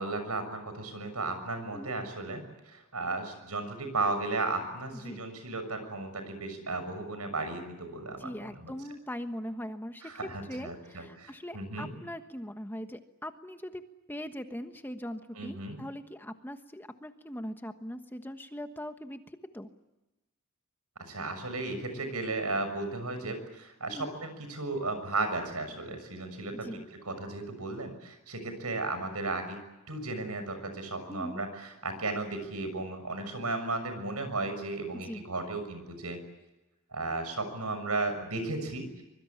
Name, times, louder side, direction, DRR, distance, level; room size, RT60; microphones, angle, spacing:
voice 1, 0.0-8.7 10.0-11.9 15.4-15.8 21.1-29.6 29.9-36.2 36.9-39.0, right 3 dB, 85° right, 9 dB, 6.6 m, -35 dB
voice 2, 4.9-5.3 8.2-10.1 10.5-13.8 14.1-19.2 19.5-19.7 23.9-24.2 26.5-26.8 31.1-31.4 34.9-35.2, equal, 10° left, 7 dB, 1.2 m, -41 dB
25.0 x 23.0 x 8.7 m, 1.0 s
head